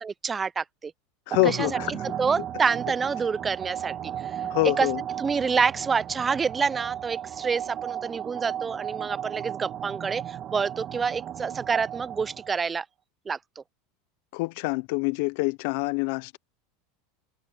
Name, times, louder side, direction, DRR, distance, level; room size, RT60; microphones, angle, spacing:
voice 1, 0.0-0.9 1.4-1.7 2.2-4.9 5.2-12.9 13.3-13.6, right 5 dB, 15° right, 0.5 m, -28 dB
voice 2, 1.3-1.9 4.5-5.0 14.3-16.4, left 25 dB, 65° left, 0.6 m, -26 dB
sound 1, 1.3-12.7, right 10 dB, 35° right, 1.3 m, -35 dB
supercardioid pair, 140°, 0 cm